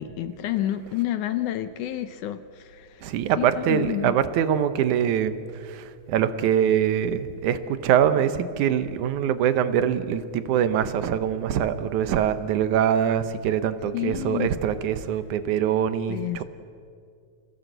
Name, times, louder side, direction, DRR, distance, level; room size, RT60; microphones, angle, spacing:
voice 1, 0.0-4.2 13.9-14.5 16.1-16.4, left 13 dB, 75° left, 11 dB, 2.1 m, -30 dB
voice 2, 3.0-5.3 5.7-16.4, right 9 dB, 70° right, 11 dB, 2.2 m, -23 dB
28.0 x 16.5 x 8.0 m, 2.3 s
omnidirectional pair, 3.9 m